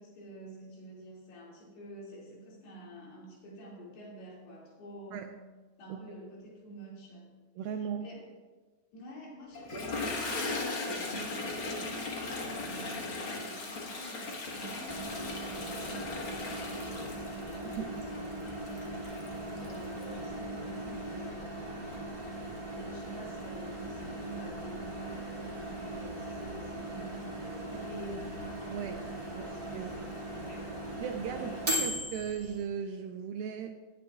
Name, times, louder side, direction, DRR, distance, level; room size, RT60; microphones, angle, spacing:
voice 1, 0.0-5.4 5.8-7.3 8.0-8.2 8.9-18.0 19.6-22.1 22.7-28.4 29.3-30.8 31.3-32.0, right 1 dB, 80° left, -3 dB, 4.5 m, -48 dB
voice 2, 7.6-8.1 17.8-17.9 28.7-29.1 29.3-29.9 31.0-31.5 31.8-33.7, right 7 dB, 80° right, 5 dB, 2.1 m, -37 dB
Toilet flush, 9.5-20.1, left 3 dB, 55° left, 1.4 m, -38 dB
Microwave oven, 14.9-32.6, right 1 dB, 35° right, 0.5 m, -39 dB
19.0 x 9.1 x 2.4 m, 1.3 s
omnidirectional pair, 4.6 m